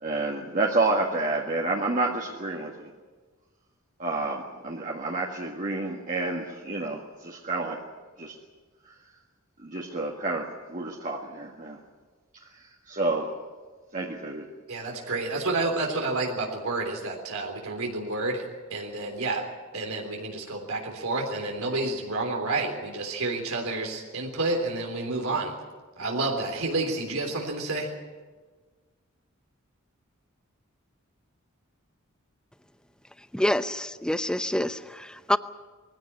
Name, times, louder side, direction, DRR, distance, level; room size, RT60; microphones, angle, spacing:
voice 1, 0.0-2.9 4.0-7.8 8.2-8.4 8.9-9.0 9.6-11.8 12.5-13.3 13.9-14.5, right 2 dB, 40° right, -1 dB, 1.8 m, -29 dB
voice 2, 14.7-18.5 18.7-19.4 19.7-25.5 26.0-27.9, right 2 dB, 85° right, 1 dB, 3.6 m, -29 dB
voice 3, 33.3-35.4, left 1 dB, 5° left, 12 dB, 0.7 m, -27 dB
22.0 x 16.0 x 9.8 m, 1.4 s
head